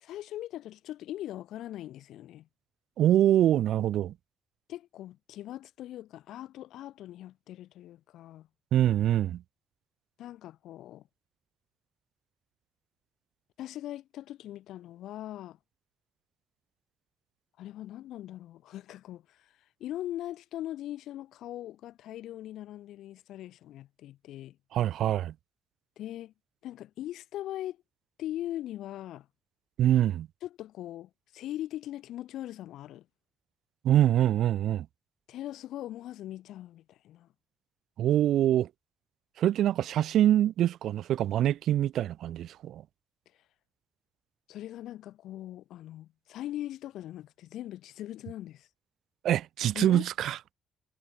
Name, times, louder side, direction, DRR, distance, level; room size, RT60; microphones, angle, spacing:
voice 1, 0.0-2.5 4.7-8.5 10.2-11.0 13.6-15.6 17.6-19.4 19.8-24.6 26.0-26.3 26.6-27.8 28.2-29.3 30.4-33.0 35.3-37.3 44.5-48.7 49.7-50.1, left 13 dB, 80° left, 0.9 m, -40 dB
voice 2, 3.0-4.1 8.7-9.4 24.7-25.3 29.8-30.3 33.8-34.9 38.0-38.7 39.4-42.8 49.2-50.4, right 12 dB, 75° right, 0.5 m, -24 dB
cardioid pair, 90°, 0 cm